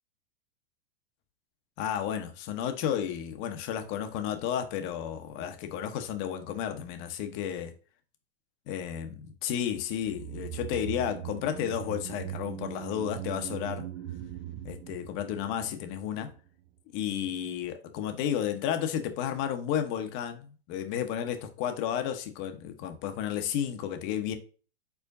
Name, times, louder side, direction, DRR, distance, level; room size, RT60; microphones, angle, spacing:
voice 1, 1.8-7.7 8.7-13.9 14.6-16.3 16.9-24.4, left 9 dB, 40° left, 0.9 m, -32 dB
sound 1, 10.0-16.4 16.7-16.8, right 14 dB, 35° right, 0.5 m, -40 dB
4.7 x 4.3 x 2.5 m
hypercardioid pair, 130°, 31 cm